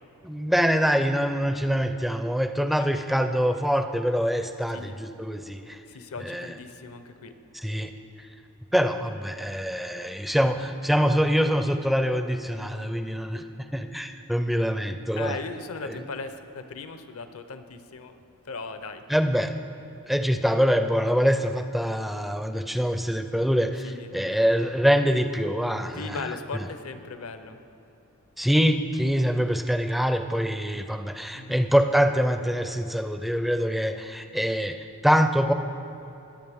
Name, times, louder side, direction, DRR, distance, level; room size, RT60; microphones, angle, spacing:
voice 1, 0.2-5.8 6.2-6.5 7.5-7.9 8.7-13.4 13.7-15.4 15.8-16.0 19.1-19.5 20.1-26.2 28.4-35.5, equal, ahead, 8 dB, 0.4 m, -24 dB
voice 2, 5.9-7.3 12.6-13.0 15.2-19.0 23.8-24.2 25.9-27.6 31.3-31.7, left 4 dB, 65° left, 9 dB, 0.7 m, -38 dB
20.5 x 8.4 x 3.5 m, 3.0 s
head